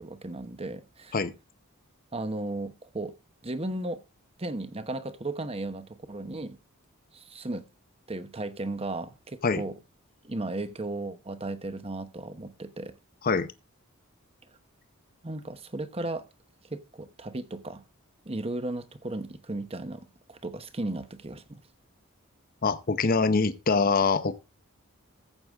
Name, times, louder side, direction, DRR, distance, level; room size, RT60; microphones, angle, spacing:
voice 1, 0.0-1.1 2.1-3.1 3.4-4.0 4.4-6.6 7.1-7.7 8.1-9.7 10.2-12.9 15.2-16.3 16.7-17.8 18.3-21.6, right 2 dB, 25° right, 1.0 m, -35 dB
voice 2, 22.6-24.3, left 4 dB, 40° left, 0.8 m, -24 dB
14.5 x 7.9 x 3.5 m
head